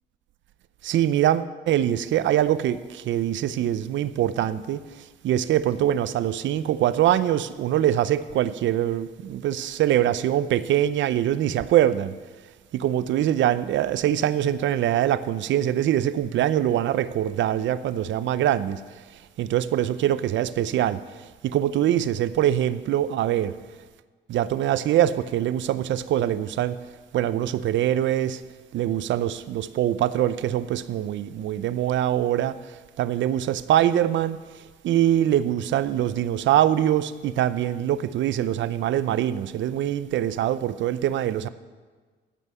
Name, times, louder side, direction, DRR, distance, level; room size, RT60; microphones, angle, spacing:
voice 1, 0.8-4.8 5.2-12.1 12.7-18.9 19.4-21.0 21.4-23.6 24.3-26.8 27.1-28.4 28.7-32.6 33.0-34.4 34.8-41.5, right 11 dB, 70° right, 0.6 m, -23 dB
13.5 x 5.5 x 7.8 m
cardioid pair, 90°, 20 cm